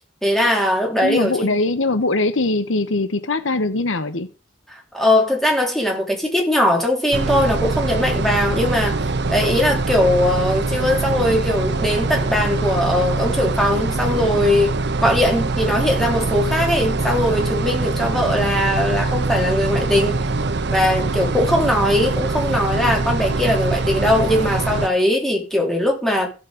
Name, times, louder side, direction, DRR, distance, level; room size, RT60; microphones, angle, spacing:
voice 1, 0.2-1.5 4.9-9.0 9.3-14.8 15.0-20.2 20.7-26.3, left 1 dB, ahead, 3.5 m, -20 dB
voice 2, 1.0-4.3, left 2 dB, 85° left, 1.1 m, -21 dB
sound 1, 7.1-24.9, right 3 dB, 60° right, 0.9 m, -23 dB
15.0 x 7.4 x 5.1 m
head